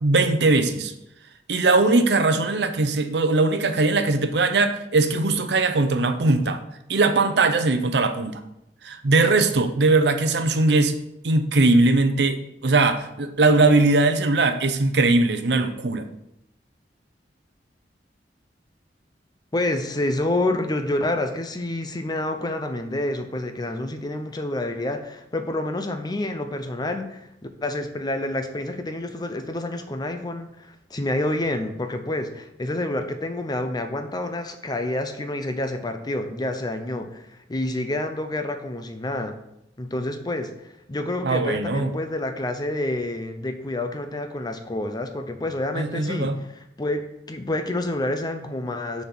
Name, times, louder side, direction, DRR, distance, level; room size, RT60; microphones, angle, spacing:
voice 1, 0.0-0.9 1.5-6.6 6.9-8.4 8.8-11.0 11.2-16.1 41.2-41.9 45.7-46.4, right 3 dB, 70° right, 0.7 m, -20 dB
voice 2, 19.5-27.3 27.6-39.4 39.8-49.0, left 1 dB, 25° left, 0.6 m, -28 dB
6.6 x 4.3 x 6.0 m
head